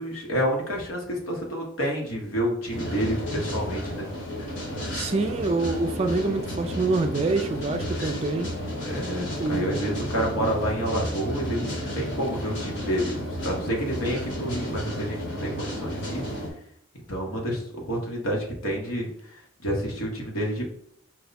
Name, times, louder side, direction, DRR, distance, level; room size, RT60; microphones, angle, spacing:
voice 1, 0.0-4.1 8.8-16.2 17.1-20.6, equal, 85° left, -1 dB, 1.4 m, -29 dB
sound 1, 2.7-16.5, equal, 60° left, 1.3 m, -32 dB
voice 2, 4.9-8.5 9.4-10.0, right 3 dB, 30° right, 6 dB, 0.3 m, -26 dB
4.7 x 2.3 x 4.0 m, 0.67 s
head